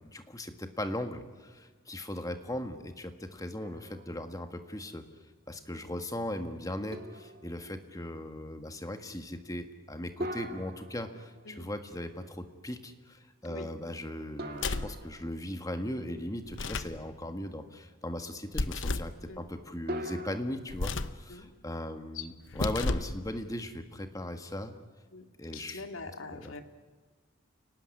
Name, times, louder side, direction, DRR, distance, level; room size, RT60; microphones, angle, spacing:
voice 1, 0.0-5.0 5.5-21.4 21.6-24.7 25.4-25.8 26.3-26.5, left 1 dB, 15° left, 7 dB, 1.6 m, -38 dB
sound 1, 3.6-4.5 5.0-5.1 6.9-7.8 10.2-11.8 14.4-15.7 19.9-20.4, equal, 45° right, 2.2 m, -42 dB
sound 2, 14.5-15.0 16.5-17.0 18.5-19.2 20.7-21.2 22.5-23.2, left 3 dB, 60° left, 0.9 m, -32 dB
voice 2, 25.5-26.6, left 4 dB, 80° left, 6 dB, 2.2 m, -43 dB
29.0 x 19.0 x 9.9 m, 1.4 s
head